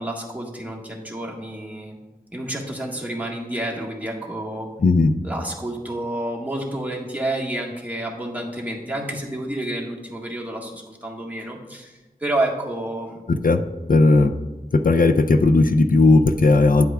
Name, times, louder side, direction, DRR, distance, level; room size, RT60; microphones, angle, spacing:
voice 1, 0.0-1.9 2.3-4.7 5.2-13.2, right 1 dB, 10° right, -2 dB, 1.5 m, -29 dB
voice 2, 4.8-5.1 13.3-13.6 13.9-14.3 14.7-16.9, left 3 dB, 65° left, 8 dB, 0.4 m, -16 dB
10.0 x 8.0 x 2.3 m, 1.1 s
wide cardioid pair, 40°, 16 cm